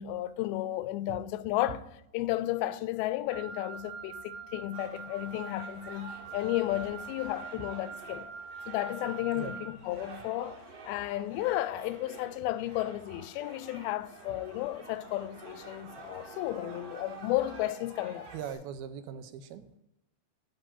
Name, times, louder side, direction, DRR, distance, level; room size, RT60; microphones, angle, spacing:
voice 1, 0.0-1.9 2.1-8.3 8.7-10.6 10.9-18.3, left 15 dB, 80° left, 2.3 m, -33 dB
Wind instrument woodwind instrument, 3.3-9.8, right 6 dB, 65° right, 2.7 m, -44 dB
sound 1, 4.7-18.5, right 3 dB, 45° right, 2.6 m, -49 dB
voice 2, 18.3-19.8, right 8 dB, 80° right, 2.4 m, -40 dB
8.0 x 5.9 x 7.0 m
omnidirectional pair, 4.6 m